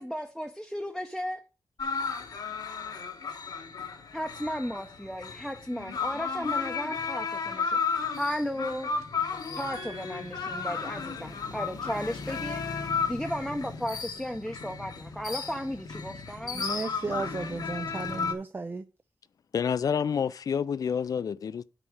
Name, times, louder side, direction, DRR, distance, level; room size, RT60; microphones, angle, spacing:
voice 1, 0.0-1.4 4.1-7.8 8.2-8.9 9.5-16.7, equal, ahead, 0.7 m, -35 dB
sound 1, 1.8-18.3, left 5 dB, 80° left, 1.2 m, -34 dB
voice 2, 9.7-10.9 16.5-18.9, right 3 dB, 30° right, 0.5 m, -36 dB
voice 3, 19.5-21.6, left 7 dB, 65° left, 0.5 m, -28 dB
8.9 x 4.2 x 6.4 m
wide cardioid pair, 120°, 7 cm